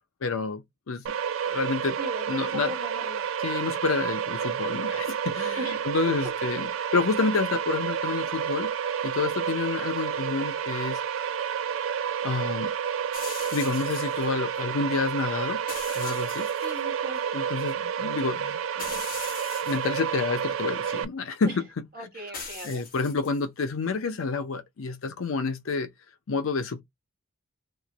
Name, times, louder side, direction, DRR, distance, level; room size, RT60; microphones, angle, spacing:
voice 1, 0.2-1.0 1.5-2.0 2.3-2.7 3.4-8.7 9.0-11.0 12.2-12.7 13.5-15.6 16.0-16.5 17.3-19.0 19.6-21.9 22.6-25.9 26.3-26.8, left 4 dB, 70° left, 0.5 m, -29 dB
sound 1, 1.1-21.1, right 8 dB, 60° right, 0.4 m, -30 dB
voice 2, 2.0-3.2 5.6-6.1 16.6-17.2 21.4-21.6 21.9-22.8, equal, 45° right, 1.1 m, -38 dB
sound 2, 13.1-14.3 15.7-16.8 17.2-17.3 18.8-20.0 22.3-23.4, left 4 dB, 40° left, 1.2 m, -40 dB
3.1 x 2.1 x 3.8 m
head